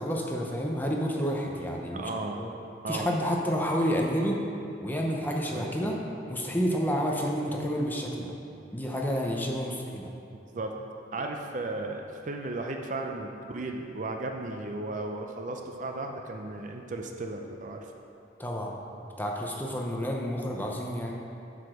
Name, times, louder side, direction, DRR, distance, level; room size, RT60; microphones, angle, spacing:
voice 1, 0.0-2.0 2.3-2.5 2.9-4.4 4.8-6.0 6.3-8.3 8.7-10.1 18.4-18.7 19.2-21.1, equal, 10° left, -1 dB, 0.7 m, -29 dB
voice 2, 1.9-2.4 2.8-3.1 5.5-5.8 10.5-10.7 11.1-17.8, right 2 dB, 40° right, 3 dB, 0.5 m, -35 dB
8.1 x 4.9 x 6.1 m, 2.7 s
head